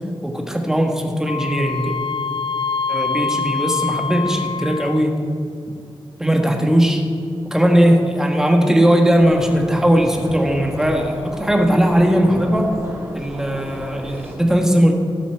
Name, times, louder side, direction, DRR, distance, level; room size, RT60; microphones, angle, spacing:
voice 1, 0.2-2.0 2.9-5.2 6.2-7.0 7.5-12.7 13.1-14.9, equal, 5° right, 2 dB, 1.4 m, -18 dB
Wind instrument woodwind instrument, 1.3-5.2, left 6 dB, 75° left, 0.5 m, -25 dB
sound 1, 9.1-14.4, equal, 25° right, 2.4 m, -35 dB
17.5 x 7.0 x 4.5 m, 2.5 s
wide cardioid pair, 125°, 9 cm